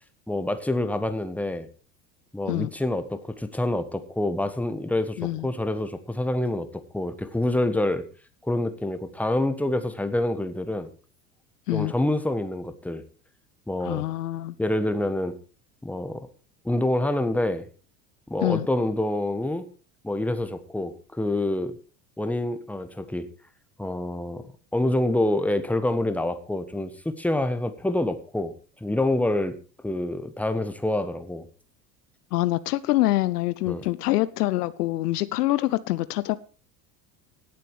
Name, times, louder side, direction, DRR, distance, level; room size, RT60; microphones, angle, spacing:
voice 1, 0.3-1.7 2.3-8.0 8.4-10.9 11.7-13.0 13.7-14.0 14.6-15.3 15.8-16.3 16.6-17.7 18.3-19.6 20.0-21.7 22.2-23.3 23.8-24.5 24.7-28.5 28.8-29.5 29.8-31.4 33.7-33.8, left 1 dB, 5° left, 10 dB, 1.5 m, -27 dB
voice 2, 5.2-5.5 11.7-11.9 13.8-14.6 18.4-18.7 32.3-36.4, left 16 dB, 70° left, 16 dB, 0.7 m, -25 dB
17.5 x 7.7 x 4.8 m, 0.38 s
figure-of-eight pair, 70°, 49 cm